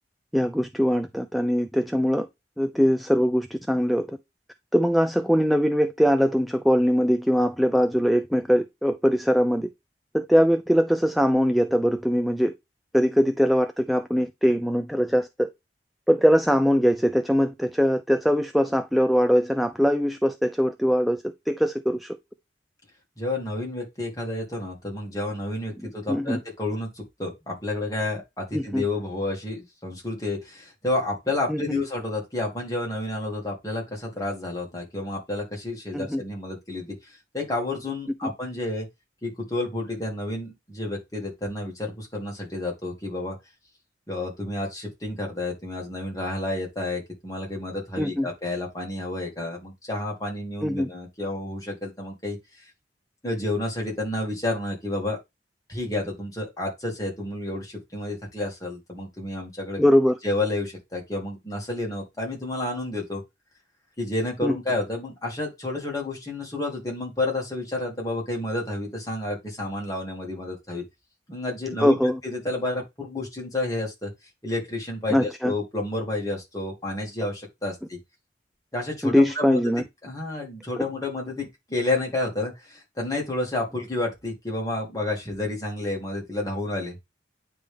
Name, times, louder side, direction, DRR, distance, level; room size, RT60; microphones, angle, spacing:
voice 1, 0.3-2.3 2.6-4.2 4.7-9.7 10.1-12.5 12.9-15.5 16.1-22.2 26.1-26.4 28.5-28.8 31.5-31.8 35.9-36.2 48.0-48.3 50.6-50.9 59.8-60.2 64.4-64.6 71.8-72.2 75.1-75.5 79.0-79.8 80.8-80.9, equal, ahead, 0.4 m, -22 dB
voice 2, 23.2-38.9 39.2-43.4 44.1-52.6 53.2-55.2 55.7-59.8 60.2-63.2 64.0-70.8 71.3-72.0 72.2-74.1 74.4-78.0 78.7-79.6 80.0-87.0, left 2 dB, 20° left, 2.4 m, -30 dB
9.3 x 3.5 x 3.4 m
head